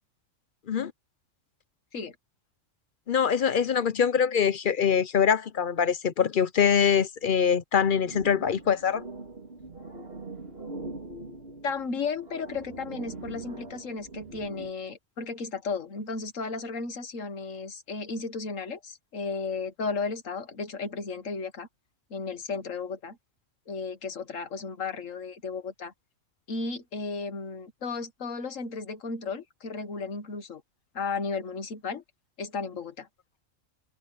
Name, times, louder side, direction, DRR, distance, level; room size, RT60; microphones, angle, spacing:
voice 1, 3.1-9.0, left 7 dB, 50° left, 0.7 m, -24 dB
sound 1, 7.8-14.7, right 2 dB, 50° right, 3.4 m, -42 dB
voice 2, 11.6-21.7 22.1-23.2 23.7-25.9 26.5-30.6 31.0-32.0 32.4-33.1, left 4 dB, 75° left, 1.9 m, -34 dB
omnidirectional pair, 1.3 m